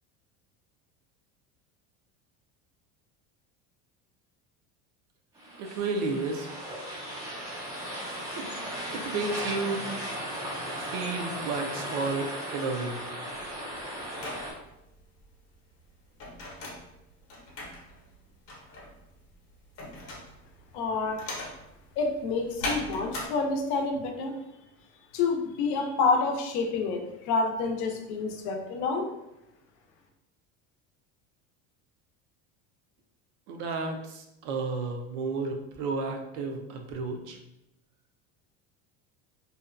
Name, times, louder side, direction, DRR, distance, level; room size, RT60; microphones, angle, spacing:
sound 1, 5.4-14.5, equal, 10° right, 0.4 m, -36 dB
voice 1, 5.6-6.5 8.3-8.5 8.9-9.8 10.7-13.0 33.5-37.4, right 3 dB, 75° right, 4 dB, 0.5 m, -32 dB
sound 2, 13.3-23.3, left 2 dB, 40° left, 0.7 m, -40 dB
voice 2, 20.7-21.2 22.0-24.4 25.1-29.1, left 4 dB, 75° left, 3 dB, 0.6 m, -28 dB
2.6 x 2.2 x 2.4 m, 0.88 s
cardioid pair, 170°, 35 cm